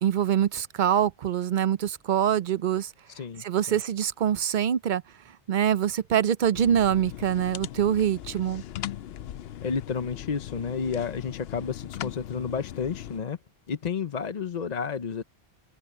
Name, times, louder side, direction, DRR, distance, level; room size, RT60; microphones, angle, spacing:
voice 1, 0.0-2.9 3.4-5.0 5.5-8.6, right 9 dB, 55° right, 0.7 m, -24 dB
voice 2, 3.1-3.8 9.6-13.4 13.7-15.2, left 6 dB, 45° left, 0.8 m, -31 dB
sound 1, 6.5-13.2, left 12 dB, 75° left, 0.8 m, -39 dB
open air
omnidirectional pair, 1.1 m